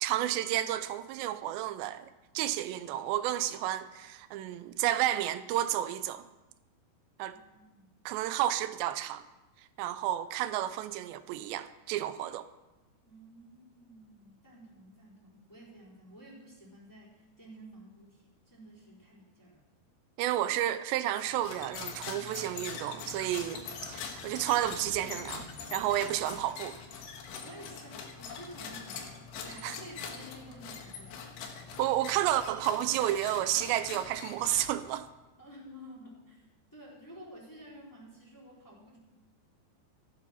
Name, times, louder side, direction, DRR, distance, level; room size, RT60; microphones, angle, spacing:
voice 1, 0.0-2.1 2.3-6.3 7.2-7.4 8.1-9.2 9.8-12.5 20.2-26.8 29.6-29.8 31.8-35.1, right 13 dB, 90° right, 2.9 m, -31 dB
voice 2, 7.3-7.9 13.0-19.6 27.4-31.2 35.4-39.0, equal, 5° left, 3.6 m, -51 dB
sound 1, 21.1-35.1, left 6 dB, 75° left, 3.5 m, -43 dB
14.5 x 11.0 x 6.0 m
omnidirectional pair, 5.0 m